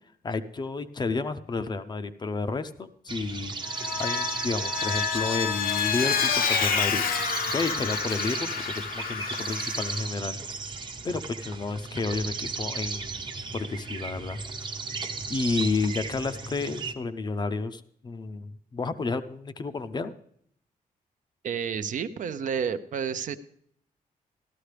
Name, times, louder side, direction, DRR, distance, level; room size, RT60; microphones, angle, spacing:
voice 1, 0.2-3.5 4.0-10.4 11.0-13.2 13.5-14.4 15.3-20.1, left 3 dB, 30° left, 11 dB, 0.5 m, -31 dB
sound 1, 3.1-16.9, right 4 dB, 30° right, 0.7 m, -35 dB
Vehicle, 3.6-10.0, left 6 dB, 75° left, 0.8 m, -28 dB
voice 2, 21.4-23.4, right 7 dB, 60° right, 11 dB, 0.5 m, -30 dB
13.0 x 12.5 x 3.3 m, 0.67 s
wide cardioid pair, 160°, 15 cm